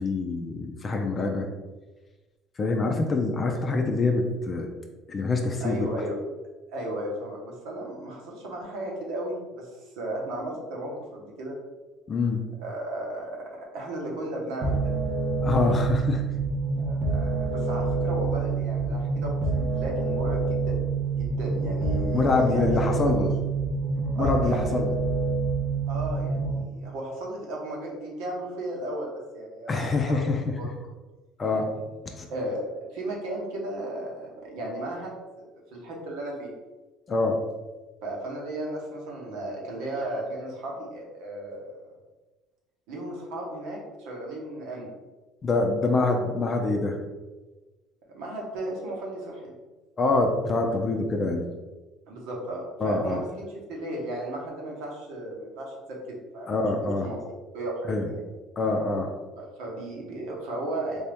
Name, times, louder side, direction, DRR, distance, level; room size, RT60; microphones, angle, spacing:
voice 1, 0.0-1.5 2.6-4.7 5.1-5.9 12.1-12.5 15.4-16.2 22.1-23.3 24.1-24.9 29.7-30.5 31.4-31.7 32.1-32.3 37.1-37.4 45.4-47.0 50.0-51.5 52.8-53.2 56.5-57.1 57.9-58.1 58.6-59.1, left 3 dB, 35° left, 3 dB, 0.5 m, -25 dB
voice 2, 5.6-6.1 6.7-11.5 12.6-14.9 16.8-20.8 21.1-23.3 24.1-24.8 25.9-30.2 30.6-30.7 32.3-36.5 38.0-41.8 42.9-44.9 48.1-49.5 52.1-57.1 57.5-58.2 59.4-61.1, right 1 dB, 80° right, -2 dB, 1.1 m, -35 dB
sound 1, 14.6-26.6, right 4 dB, 55° right, 0.8 m, -27 dB
3.5 x 2.8 x 3.4 m, 1.2 s
supercardioid pair, 90°, 0 cm